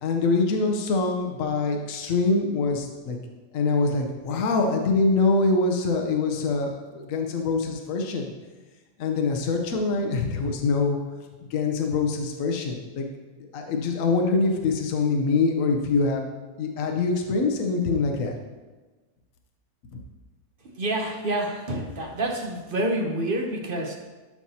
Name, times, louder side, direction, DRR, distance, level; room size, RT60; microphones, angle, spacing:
voice 1, 0.0-3.2 3.5-8.3 9.0-11.0 11.5-13.1 13.5-16.2 16.6-18.3 19.9-20.0, left 3 dB, 65° left, 3 dB, 1.2 m, -24 dB
voice 2, 20.7-24.0, right 1 dB, 45° right, 2 dB, 0.9 m, -28 dB
12.0 x 5.8 x 2.8 m, 1.3 s
omnidirectional pair, 1.5 m